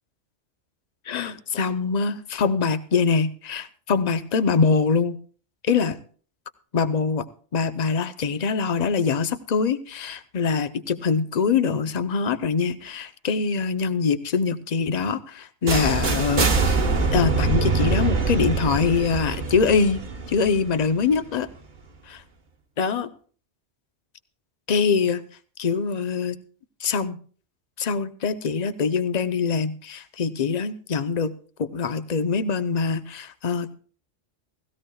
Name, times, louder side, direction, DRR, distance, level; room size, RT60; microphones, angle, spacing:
voice 1, 1.1-5.2 5.6-6.0 6.7-7.2 7.5-16.8 17.1-20.0 20.3-21.5 22.1-22.2 22.8-23.1 24.7-25.2 25.6-26.4 26.8-27.2 27.8-31.3 31.6-33.7, left 5 dB, 40° left, 12 dB, 0.7 m, -24 dB
sound 1, 15.7-21.5, right 4 dB, 40° right, 1.2 m, -24 dB
17.5 x 16.5 x 2.3 m, 0.42 s
omnidirectional pair, 1.3 m